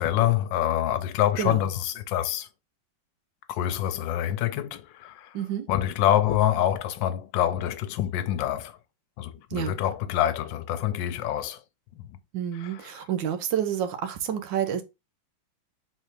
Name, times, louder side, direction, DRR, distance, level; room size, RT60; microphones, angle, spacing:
voice 1, 0.0-2.5 3.5-5.4 5.7-8.8 9.2-11.6 12.0-12.1 12.5-12.9, left 12 dB, 80° left, 1.3 m, -26 dB
voice 2, 5.3-5.7 9.5-9.7 12.3-14.8, right 9 dB, 75° right, 1.5 m, -29 dB
4.2 x 3.9 x 3.2 m
omnidirectional pair, 2.1 m